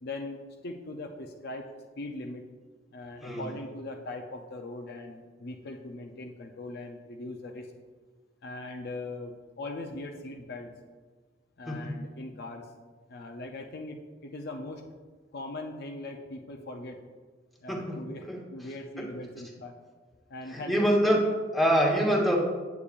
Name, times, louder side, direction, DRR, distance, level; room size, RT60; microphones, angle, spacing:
voice 1, 0.0-1.7 2.0-2.5 2.9-7.7 8.4-10.7 11.6-12.7 13.1-14.8 15.3-17.0 17.6-19.8 20.3-21.2, left 2 dB, 55° left, 3 dB, 0.6 m, -40 dB
voice 2, 17.7-18.4 19.0-19.1 20.5-22.4, equal, ahead, -3 dB, 1.2 m, -26 dB
8.6 x 8.3 x 2.5 m, 1.4 s
head